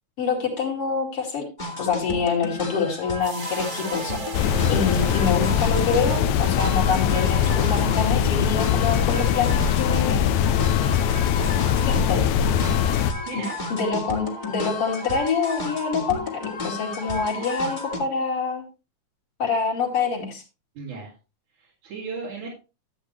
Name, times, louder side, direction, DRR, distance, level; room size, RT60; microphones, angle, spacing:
voice 1, 0.2-1.4 1.8-4.2 4.7-10.3 11.9-12.2 13.3-13.4 13.7-18.6 19.4-20.4, left 5 dB, 50° left, 1 dB, 3.1 m, -26 dB
sound 1, 1.6-18.0, left 3 dB, 20° left, 1.6 m, -32 dB
sound 2, 3.2-9.6, right 3 dB, 65° right, 0.4 m, -39 dB
sound 3, 4.3-13.1, left 9 dB, 85° left, 2.0 m, -22 dB
voice 2, 11.8-12.2 12.5-12.9 13.3-13.6 20.8-21.1 21.6-22.6, right 4 dB, 85° right, -5 dB, 3.9 m, -37 dB
12.5 x 8.1 x 3.1 m, 0.29 s
omnidirectional pair, 3.4 m